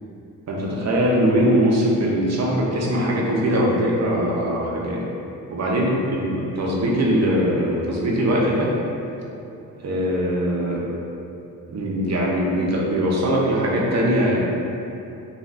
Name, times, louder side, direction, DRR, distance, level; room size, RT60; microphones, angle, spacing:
voice 1, 0.5-5.0 5.5-8.7 9.8-10.8 11.7-14.4, equal, 45° right, -4 dB, 0.6 m, -21 dB
2.4 x 2.3 x 2.3 m, 2.8 s
supercardioid pair, 50°, 39 cm